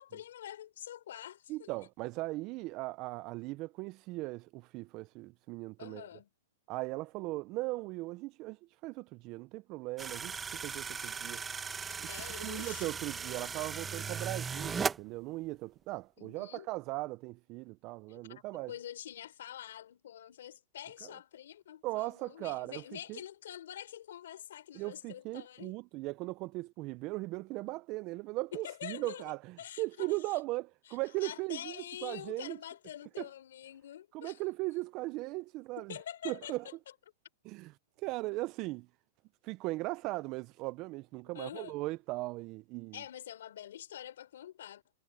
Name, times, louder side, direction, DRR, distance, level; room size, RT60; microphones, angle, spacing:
voice 1, 0.0-1.7 5.8-6.3 11.9-12.9 16.2-16.7 18.1-25.7 28.5-29.2 29.6-30.1 31.2-34.4 35.8-36.7 41.3-41.8 42.9-44.8, left 11 dB, 75° left, 3.9 m, -46 dB
voice 2, 1.5-6.0 6.7-11.4 12.0-12.1 12.4-18.7 21.0-21.1 21.8-22.8 23.1-23.2 24.7-32.6 33.2-33.3 34.1-36.0 36.2-36.6 37.4-38.9 39.4-43.0, right 21 dB, 35° right, 0.4 m, -38 dB
sound 1, 10.0-15.0, right 6 dB, 15° right, 1.0 m, -37 dB
hypercardioid pair, 150°, 0 cm